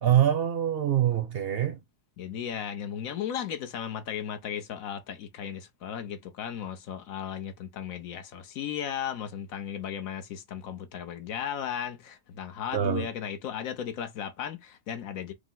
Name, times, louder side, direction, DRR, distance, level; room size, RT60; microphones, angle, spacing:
voice 1, 0.0-1.8 12.7-13.1, right 10 dB, 60° right, 0.7 m, -24 dB
voice 2, 2.2-15.3, left 8 dB, 80° left, 1.2 m, -35 dB
4.9 x 2.1 x 3.7 m
omnidirectional pair, 1.4 m